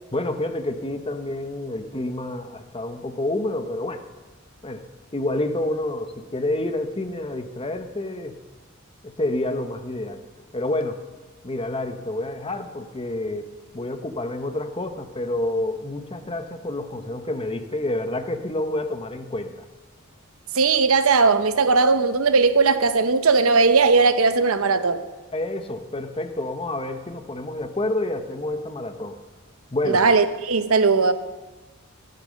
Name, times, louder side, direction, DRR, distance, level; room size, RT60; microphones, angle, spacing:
voice 1, 0.1-4.0 4.6-4.8 5.1-8.4 9.0-10.2 10.5-11.0 11.4-19.6 25.3-29.2 29.7-30.0, left 1 dB, 25° left, 7 dB, 1.0 m, -28 dB
voice 2, 20.5-25.0 29.9-31.1, right 4 dB, 80° right, 11 dB, 0.9 m, -18 dB
15.0 x 12.0 x 6.5 m, 1.2 s
head